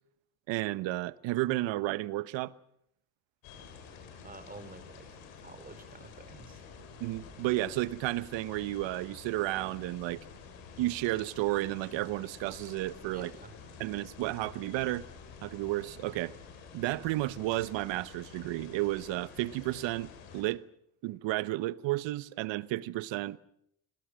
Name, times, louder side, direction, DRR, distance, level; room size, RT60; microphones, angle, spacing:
voice 1, 0.5-2.5 7.0-10.2 10.8-13.3 13.8-15.0 15.4-16.3 16.7-20.7 21.0-23.4, right 17 dB, 75° right, 1.1 m, -32 dB
sound 1, 3.4-20.4, left 6 dB, 85° left, 6.9 m, -50 dB
voice 2, 4.2-5.1 5.4-6.6 13.1-13.6, right 2 dB, 20° right, 4.4 m, -49 dB
27.5 x 20.0 x 6.4 m
supercardioid pair, 80°, 45 cm